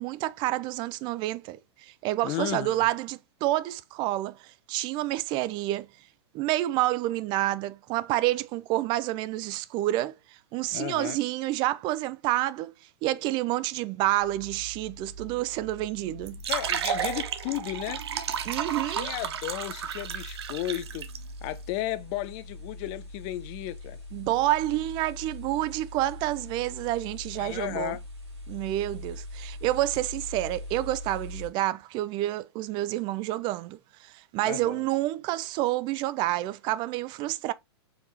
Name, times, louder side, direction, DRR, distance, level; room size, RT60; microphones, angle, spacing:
voice 1, 0.0-5.9 6.3-10.2 10.5-12.7 13.0-16.4 18.4-19.1 24.1-28.0 28.5-37.5, right 16 dB, 35° right, 0.4 m, -29 dB
voice 2, 2.2-2.9 10.7-11.2 16.5-18.0 18.9-21.0 21.4-24.0 27.3-28.0 34.4-34.8, left 15 dB, 40° left, 0.4 m, -34 dB
sound 1, 14.2-31.5, left 1 dB, 85° right, 2.4 m, -42 dB
sound 2, 16.2-21.2, right 8 dB, 70° right, 0.7 m, -32 dB
4.7 x 3.5 x 2.8 m
hypercardioid pair, 115°, 14 cm